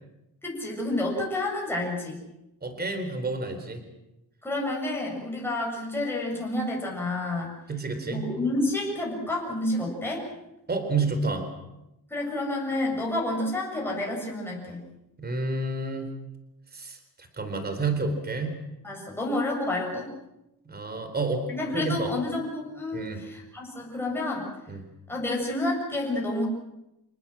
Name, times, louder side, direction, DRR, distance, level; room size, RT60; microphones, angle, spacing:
voice 1, 0.4-2.2 4.4-7.6 8.1-10.3 12.1-14.8 18.8-20.1 21.5-24.5 25.1-26.5, left 2 dB, 5° left, -3 dB, 7.3 m, -29 dB
voice 2, 2.6-3.8 7.7-8.3 10.7-11.4 15.2-16.1 16.7-18.6 20.7-21.5 21.7-22.1 22.9-23.2 24.7-24.8, right 3 dB, 25° right, 7 dB, 4.1 m, -29 dB
28.0 x 19.0 x 7.6 m, 0.91 s
cardioid pair, 150°, 39 cm